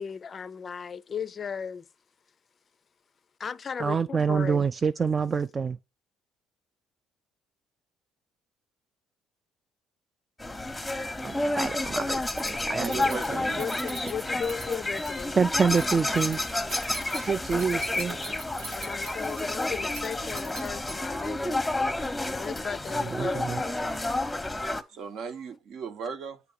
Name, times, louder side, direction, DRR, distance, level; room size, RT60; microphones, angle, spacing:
voice 1, 0.0-1.8 3.4-4.6 13.6-15.4 18.7-21.7 22.2-23.5, left 6 dB, 40° left, 0.4 m, -36 dB
voice 2, 3.8-5.8 11.2-13.4 15.4-16.4 16.7-18.2 23.0-23.6, right 5 dB, 35° right, 0.3 m, -27 dB
sound 1, 10.4-24.8, left 2 dB, 10° left, 0.8 m, -30 dB
Keys jangling, 12.2-21.2, right 3 dB, 90° right, 1.5 m, -43 dB
voice 3, 12.7-13.6 18.6-18.7 24.9-26.4, right 5 dB, 65° right, 0.9 m, -37 dB
8.2 x 2.9 x 5.2 m
supercardioid pair, 80°, 0 cm